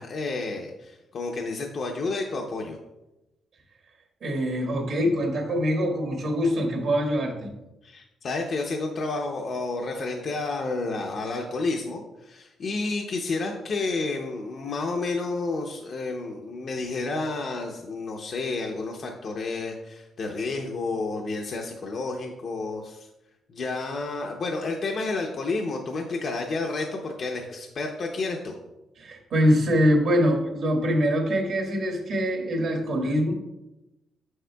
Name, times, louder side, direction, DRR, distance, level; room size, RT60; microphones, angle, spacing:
voice 1, 0.0-2.8 7.8-23.1 23.5-28.5, left 3 dB, 50° left, 2 dB, 0.7 m, -30 dB
voice 2, 4.2-7.5 29.0-33.3, equal, 65° right, 1 dB, 1.6 m, -24 dB
7.2 x 6.4 x 2.3 m, 0.96 s
cardioid pair, 90°, 0 cm